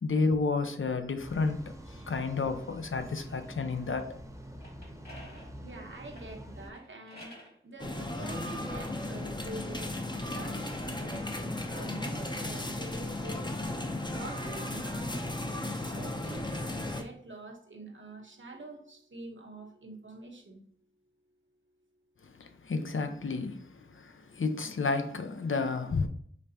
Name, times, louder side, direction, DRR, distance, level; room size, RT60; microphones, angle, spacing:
voice 1, 0.0-1.7 2.1-4.1 22.4-26.1, left 4 dB, 70° left, 0.5 m, -31 dB
sound 1, 1.2-6.7, equal, 15° right, 0.8 m, -47 dB
sound 2, 4.4-7.6 8.3-10.0 10.6-12.9, equal, 45° left, 1.8 m, -54 dB
voice 2, 5.6-7.3 7.6-9.9 10.2-13.5 14.1-15.2 15.5-20.6, right 2 dB, 65° right, 0.9 m, -46 dB
sound 3, 7.8-17.0, left 2 dB, 20° left, 0.6 m, -35 dB
5.2 x 3.4 x 2.7 m
wide cardioid pair, 45°, 21 cm